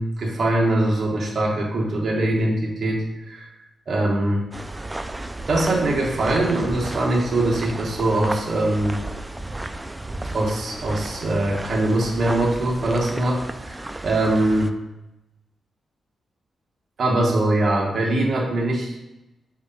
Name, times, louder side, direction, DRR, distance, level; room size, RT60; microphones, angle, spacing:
voice 1, 0.0-3.5 3.9-4.4 5.5-9.0 10.3-14.7 17.0-19.0, right 1 dB, 50° right, -2 dB, 1.2 m, -22 dB
sound 1, 4.5-14.7, right 2 dB, 15° right, 0.3 m, -33 dB
4.9 x 4.0 x 5.3 m, 0.94 s
wide cardioid pair, 130°, 0 cm